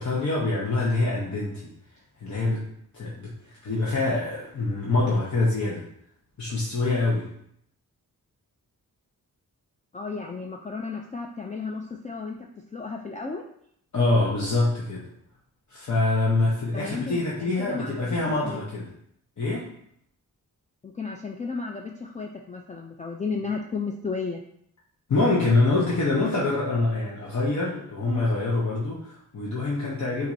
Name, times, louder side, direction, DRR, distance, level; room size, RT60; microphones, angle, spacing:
voice 1, 0.0-1.7 2.2-2.6 2.9-3.3 3.6-5.9 6.4-7.3 13.9-15.1 15.7-18.9 19.4-19.7 25.1-30.3, left 2 dB, 55° left, -5 dB, 0.9 m, -25 dB
voice 2, 9.9-13.5 16.7-18.6 20.8-24.4, left 4 dB, 20° left, 1 dB, 0.3 m, -34 dB
7.1 x 2.6 x 2.6 m, 0.70 s
wide cardioid pair, 95°, 35 cm